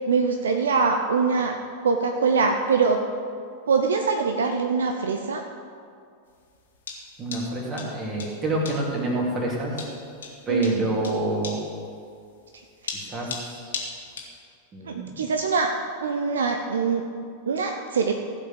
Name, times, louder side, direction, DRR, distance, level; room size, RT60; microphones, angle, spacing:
voice 1, 0.0-1.6 1.8-3.0 3.7-5.4 10.5-11.1 12.5-12.6 14.8-15.7 16.0-17.1 17.4-18.1, right 5 dB, 65° right, 5 dB, 0.6 m, -23 dB
sound 1, 6.3-14.4, left 5 dB, 65° left, 1.9 m, -37 dB
voice 2, 7.2-9.8 10.5-11.6 12.9-13.7 14.7-15.2, right 1 dB, 25° right, -3 dB, 3.0 m, -28 dB
15.5 x 5.4 x 7.0 m, 2.3 s
figure-of-eight pair, 90°, 0 cm